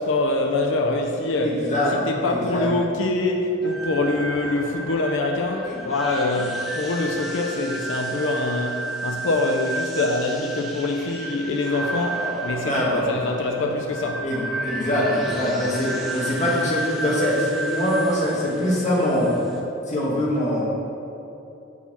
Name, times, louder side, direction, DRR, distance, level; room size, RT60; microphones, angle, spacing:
voice 1, 0.0-1.6 2.1-14.3, left 2 dB, 65° left, 2 dB, 0.4 m, -24 dB
voice 2, 1.4-2.0 2.3-2.7 5.7-5.8 6.2-6.3 12.7-13.1 14.2-19.3 19.9-20.6, left 1 dB, 35° left, -5 dB, 1.2 m, -23 dB
sound 1, 3.6-19.6, right 2 dB, ahead, 0.6 m, -32 dB
4.7 x 4.2 x 5.7 m, 2.8 s
head